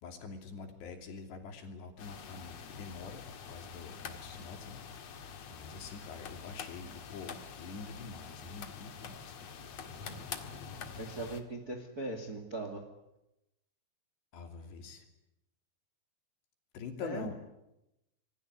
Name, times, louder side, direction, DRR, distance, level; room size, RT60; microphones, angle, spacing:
voice 1, 0.0-4.8 5.5-9.5 14.3-15.0 16.7-17.3, left 5 dB, 70° left, 4 dB, 4.9 m, -45 dB
sound 1, 2.0-11.4, left 6 dB, 50° left, 2.1 m, -46 dB
voice 2, 11.0-12.8 17.0-17.3, right 2 dB, 30° right, 6 dB, 1.9 m, -39 dB
26.5 x 21.0 x 9.6 m, 0.90 s
omnidirectional pair, 5.2 m